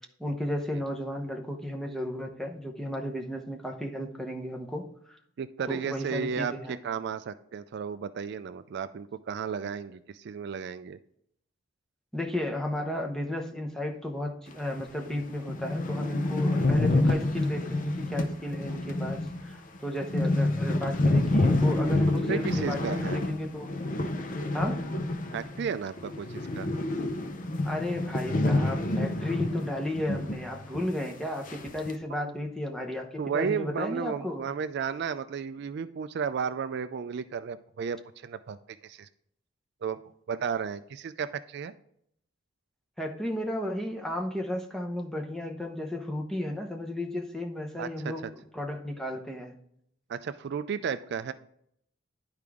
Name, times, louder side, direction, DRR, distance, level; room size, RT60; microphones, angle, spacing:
voice 1, 0.2-5.2 5.7-6.8 12.1-23.7 24.5-24.8 27.6-34.5 43.0-48.3 48.5-49.5, left 1 dB, ahead, 1 dB, 0.8 m, -34 dB
voice 2, 5.4-11.0 22.3-23.2 25.3-26.7 32.2-32.3 33.2-38.6 38.8-39.1 39.8-40.0 40.3-41.7 47.8-48.1 50.1-51.3, right 6 dB, 55° right, 12 dB, 0.3 m, -33 dB
sound 1, 14.8-14.9 15.2-15.3 15.5-25.7 26.0-30.5 30.7-30.8 31.5-31.9, left 2 dB, 40° left, 0.6 m, -28 dB
11.0 x 4.8 x 3.5 m, 0.70 s
head